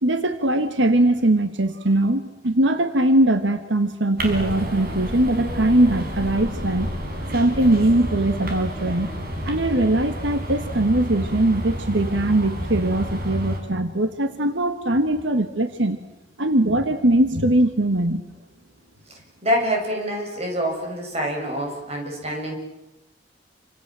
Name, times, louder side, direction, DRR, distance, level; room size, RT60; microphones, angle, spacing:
voice 1, 0.0-6.9 7.3-9.1 9.4-16.0 16.4-18.2, right 1 dB, 90° right, 9 dB, 1.7 m, -21 dB
sound 1, 4.2-13.6, equal, 55° right, 5.7 m, -30 dB
voice 2, 19.4-22.5, equal, 35° right, 1 dB, 7.6 m, -26 dB
28.0 x 26.5 x 7.7 m, 0.96 s
head